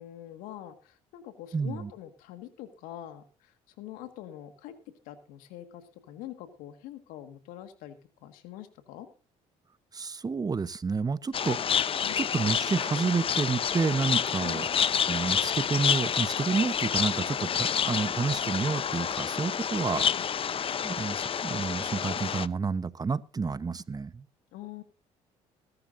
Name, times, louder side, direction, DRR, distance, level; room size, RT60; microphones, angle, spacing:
voice 1, 0.0-4.8 5.1-9.1 12.0-12.2 14.4-14.7 19.9-20.3 24.5-24.8, left 12 dB, 85° left, 1.8 m, -44 dB
voice 2, 1.5-1.9 9.9-11.8 12.2-14.6 15.1-20.0 20.8-24.2, right 4 dB, 25° right, 1.0 m, -30 dB
sound 1, 11.3-22.5, left 8 dB, 40° left, 0.7 m, -29 dB
21.5 x 12.0 x 2.6 m
supercardioid pair, 75°, 14 cm